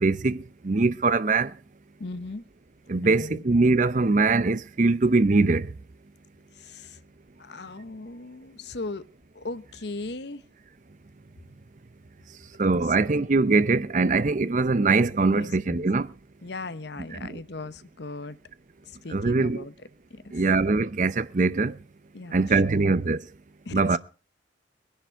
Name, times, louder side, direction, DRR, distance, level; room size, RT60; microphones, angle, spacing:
voice 1, 0.0-1.5 2.9-5.7 12.6-16.1 17.1-17.4 19.1-19.6 20.3-21.8 22.3-23.2 23.7-24.0, right 3 dB, 40° right, 0.6 m, -22 dB
voice 2, 2.0-2.4 2.9-3.4 6.5-7.0 7.4-9.1 9.3-10.4 12.8-12.9 15.3-15.9 16.4-18.4 18.9-19.7 20.1-20.3 22.1-22.9 23.6-24.0, left 3 dB, 65° left, 0.9 m, -38 dB
21.5 x 10.5 x 4.5 m
head